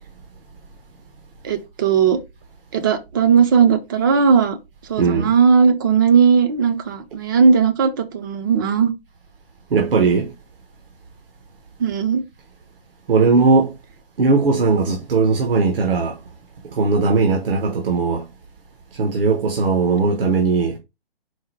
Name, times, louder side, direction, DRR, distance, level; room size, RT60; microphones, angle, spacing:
voice 1, 1.4-2.2 2.7-4.6 4.9-8.9 11.8-12.2, right 6 dB, 25° right, 0.4 m, -17 dB
voice 2, 5.0-5.3 9.7-10.3 13.1-13.7 14.2-16.2 16.6-18.3 18.9-20.8, right 4 dB, 70° right, 1.0 m, -18 dB
4.6 x 2.1 x 4.4 m
hypercardioid pair, 135°, 29 cm